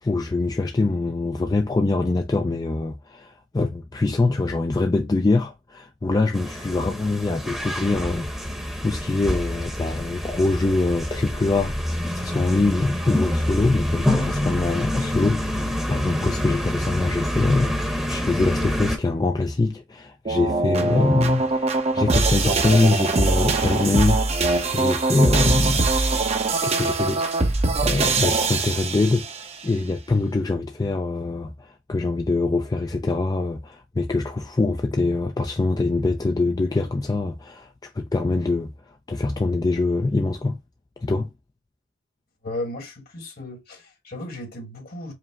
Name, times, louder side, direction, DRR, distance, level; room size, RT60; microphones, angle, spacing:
voice 1, 0.0-8.3 8.8-25.9 26.6-29.3 29.6-38.7 39.1-40.6 41.0-41.3, left 3 dB, 20° left, 0.3 m, -24 dB
sound 1, 6.3-19.0, left 1 dB, ahead, 0.9 m, -27 dB
sound 2, 20.2-29.5, right 3 dB, 35° right, 0.7 m, -22 dB
voice 2, 42.4-45.1, left 1 dB, 50° left, 1.4 m, -35 dB
5.0 x 2.0 x 3.5 m
head